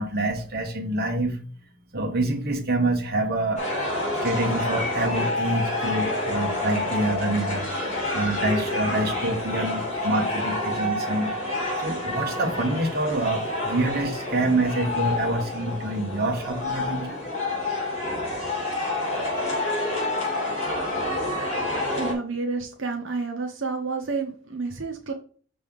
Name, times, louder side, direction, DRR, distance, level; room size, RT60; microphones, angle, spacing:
voice 1, 0.0-1.4 1.9-3.7 4.2-11.3 11.8-17.2, right 2 dB, 50° right, 2 dB, 1.4 m, -26 dB
sound 1, 3.6-22.1, left 2 dB, 35° left, 2.8 m, -28 dB
voice 2, 22.0-25.1, right 4 dB, 85° right, 2 dB, 0.9 m, -30 dB
6.1 x 3.4 x 5.3 m, 0.43 s
head